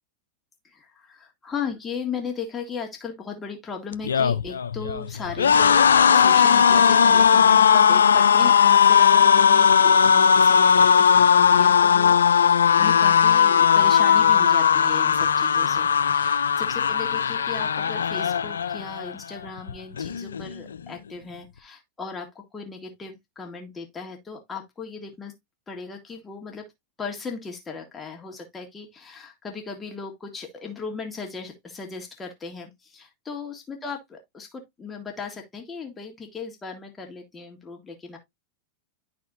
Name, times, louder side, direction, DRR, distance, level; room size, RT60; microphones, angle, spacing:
voice 1, 0.6-25.3 25.7-26.7 27.0-38.2, left 5 dB, 15° left, 1.8 m, -37 dB
sound 1, 3.9-19.1 19.5-19.7 20.0-20.8, left 7 dB, 90° left, 0.5 m, -18 dB
11.5 x 4.2 x 2.6 m
hypercardioid pair, 110°, 0 cm